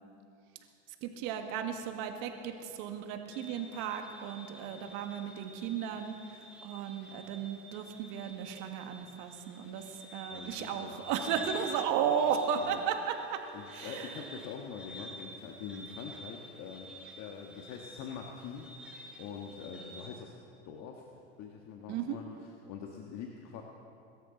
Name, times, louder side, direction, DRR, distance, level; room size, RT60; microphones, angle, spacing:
voice 1, 1.0-6.1 6.6-9.8 10.1-13.4 13.7-14.1 21.9-22.2, right 8 dB, 65° right, 5 dB, 1.8 m, -34 dB
sound 1, 3.3-20.1, equal, 5° right, 4.4 m, -49 dB
voice 2, 10.3-11.6 12.6-12.8 13.5-18.9 19.2-20.3 20.6-21.1 21.4-23.6, left 6 dB, 55° left, 1 dB, 1.5 m, -44 dB
23.0 x 13.0 x 3.9 m, 2.6 s
hypercardioid pair, 95°, 32 cm